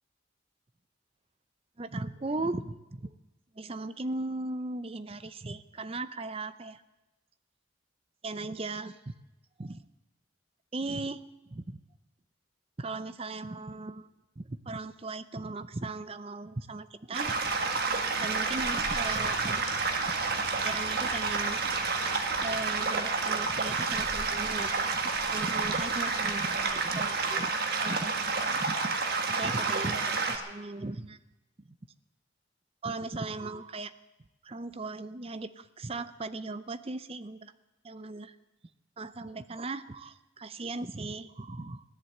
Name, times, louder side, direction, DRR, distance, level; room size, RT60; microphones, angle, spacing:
voice 1, 1.8-3.1 3.6-6.8 8.2-9.1 9.6-9.8 10.7-11.8 12.8-14.1 14.4-17.3 18.2-19.7 20.6-29.0 29.3-31.2 31.7-31.8 32.8-33.9 34.4-37.5 37.8-38.4 39.0-41.8, right 2 dB, 30° right, 12 dB, 0.6 m, -38 dB
sound 1, 17.1-30.4, right 4 dB, 55° right, 1.5 m, -29 dB
sound 2, 17.2-28.8, equal, 35° left, 7.6 m, -50 dB
16.5 x 11.0 x 7.8 m, 1.0 s
head